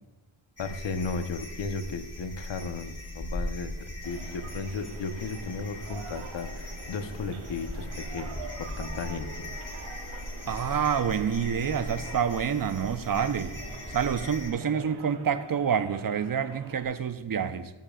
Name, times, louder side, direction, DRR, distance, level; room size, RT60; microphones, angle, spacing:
voice 1, 0.6-9.5, left 4 dB, 60° left, 9 dB, 1.1 m, -35 dB
sound 1, 0.6-14.5, left 1 dB, 35° left, 2.9 m, -39 dB
sound 2, 4.0-16.8, right 6 dB, 90° right, 1.2 m, -45 dB
voice 2, 10.5-13.5 13.9-17.7, right 7 dB, 45° right, 10 dB, 0.8 m, -28 dB
16.0 x 7.2 x 2.4 m, 1.1 s
supercardioid pair, 45°, 49 cm